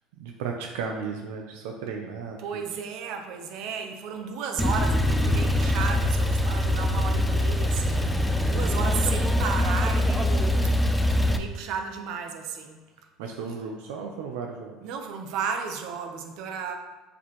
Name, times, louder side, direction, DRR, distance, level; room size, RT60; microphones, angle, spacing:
voice 1, 0.2-2.6 8.8-9.0 13.2-14.8, right 5 dB, 90° right, 2 dB, 0.7 m, -35 dB
voice 2, 2.4-12.8 14.8-16.7, right 6 dB, 65° right, 5 dB, 1.0 m, -34 dB
Male speech man speaking / Car / Idling, 4.6-11.4, left 1 dB, 5° left, 0.5 m, -23 dB
7.4 x 6.4 x 3.1 m, 1.3 s
cardioid pair, 135°, 0 cm